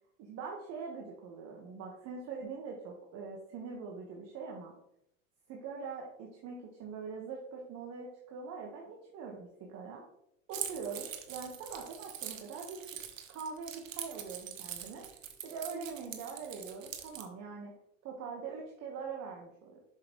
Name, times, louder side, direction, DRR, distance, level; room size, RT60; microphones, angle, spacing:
voice 1, 0.2-4.7 5.5-10.0 10.5-13.0 13.3-15.1 15.4-17.7 18.0-19.8, right 5 dB, 40° right, -1 dB, 1.5 m, -43 dB
Keys jangling, 10.5-17.3, right 9 dB, 85° right, 1.2 m, -43 dB
7.2 x 6.5 x 3.1 m, 0.80 s
hypercardioid pair, 105°, 38 cm